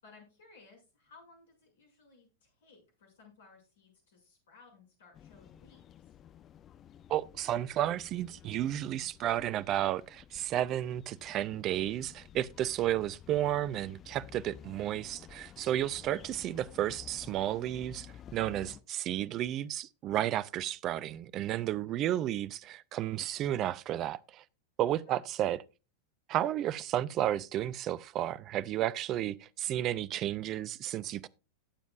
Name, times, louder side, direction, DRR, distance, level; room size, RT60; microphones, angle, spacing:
voice 1, 0.0-6.2 21.9-22.3 25.0-25.3, left 4 dB, 60° left, 6.8 m, -59 dB
sound 1, 5.1-18.8, left 9 dB, 30° left, 0.8 m, -53 dB
voice 2, 7.1-24.4 24.8-25.6 26.3-31.3, right 12 dB, 35° right, 0.5 m, -32 dB
18.5 x 7.2 x 2.4 m
figure-of-eight pair, 90°, 0 cm